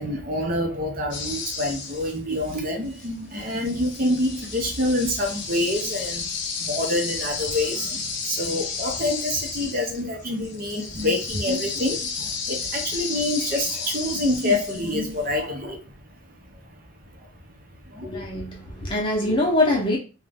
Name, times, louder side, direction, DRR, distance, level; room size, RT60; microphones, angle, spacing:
voice 1, 0.0-15.9 16.5-16.8 17.1-17.3 17.8-18.3 18.8-18.9, left 1 dB, 45° right, 0.6 m, -27 dB
sound 1, 1.1-2.6 2.9-15.2, left 5 dB, 60° left, 0.6 m, -32 dB
voice 2, 18.0-20.0, left 2 dB, 25° left, 0.7 m, -23 dB
2.5 x 2.2 x 3.3 m
head